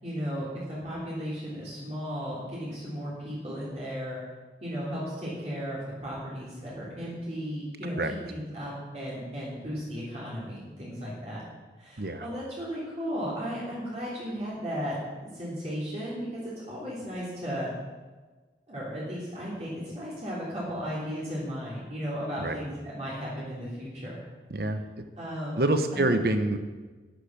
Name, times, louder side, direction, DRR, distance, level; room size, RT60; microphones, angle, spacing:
voice 1, 0.0-4.2 4.6-11.4 11.8-15.0 15.3-17.7 18.7-24.2 25.2-25.6 25.9-26.2, equal, 40° right, -7 dB, 3.3 m, -35 dB
voice 2, 24.5-24.8 25.6-26.6, right 2 dB, 60° right, 8 dB, 1.0 m, -26 dB
11.0 x 10.5 x 6.1 m, 1.3 s
head